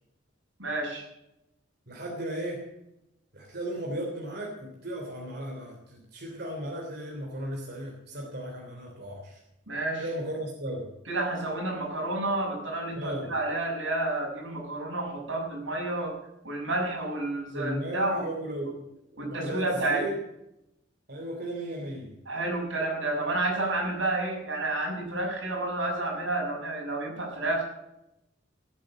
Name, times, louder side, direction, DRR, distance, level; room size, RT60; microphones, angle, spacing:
voice 1, 0.6-1.1 9.7-10.1 11.1-16.1 16.4-18.3 19.2-20.0 22.3-27.6, right 2 dB, 90° right, -1 dB, 6.3 m, -30 dB
voice 2, 1.9-2.6 3.3-9.4 10.0-10.9 13.0-13.3 17.5-18.9 19.1-20.2 21.1-22.1, right 1 dB, 60° right, -1 dB, 3.3 m, -35 dB
17.0 x 8.0 x 7.7 m, 0.87 s
head